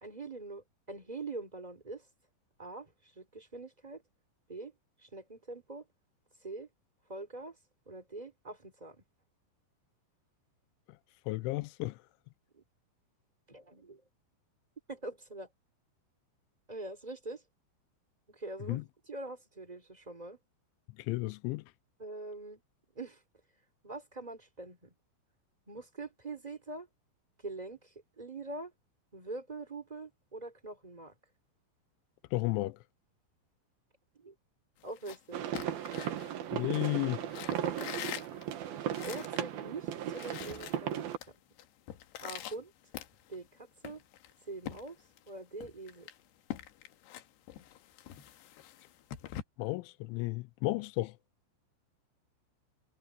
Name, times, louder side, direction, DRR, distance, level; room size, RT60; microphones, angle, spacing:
voice 1, 0.0-2.0 2.6-4.0 4.5-4.7 5.0-5.8 6.4-6.7 7.1-7.6 7.9-9.0 12.5-12.6 13.5-14.0 14.9-15.5 16.7-17.4 18.3-20.4 22.0-22.6 22.9-23.2 23.8-24.9 25.7-26.9 27.4-28.7 29.1-31.1 34.1-34.3 34.8-35.5 37.5-37.9 39.0-41.2 42.2-42.7 43.3-44.0 44.5-45.0 45.3-46.1, right 2 dB, 10° right, 1.9 m, -44 dB
voice 2, 11.3-12.0 18.7-18.8 21.0-21.6 32.3-32.8 36.5-37.3 49.6-51.1, left 20 dB, 85° left, 2.7 m, -33 dB
sound 1, 34.8-36.8 37.3-39.5 39.8-39.9 40.1-41.3 41.6-43.5 43.8-45.3 45.6-49.4, left 12 dB, 70° left, 2.9 m, -45 dB
sound 2, 35.3-41.2, right 10 dB, 60° right, 2.8 m, -36 dB
omnidirectional pair, 6.0 m